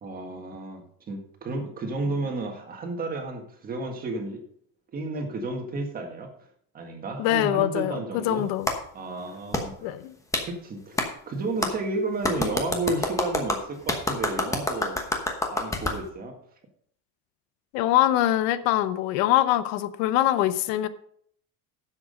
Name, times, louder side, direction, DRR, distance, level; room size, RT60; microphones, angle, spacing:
voice 1, 0.0-4.4 4.9-6.3 6.7-8.5 8.9-10.0 10.4-15.0 15.5-16.3, right 2 dB, 25° right, 3 dB, 1.7 m, -32 dB
voice 2, 7.2-8.7 9.8-10.2 17.7-20.9, left 13 dB, 85° left, 13 dB, 1.0 m, -23 dB
Clapping, 8.7-8.8 9.5-9.6 10.3-10.5 11.0-11.1 11.6-11.7 12.2-16.0, left 2 dB, 10° left, 1.1 m, -27 dB
11.0 x 7.6 x 5.1 m, 0.65 s
cardioid pair, 175°, 38 cm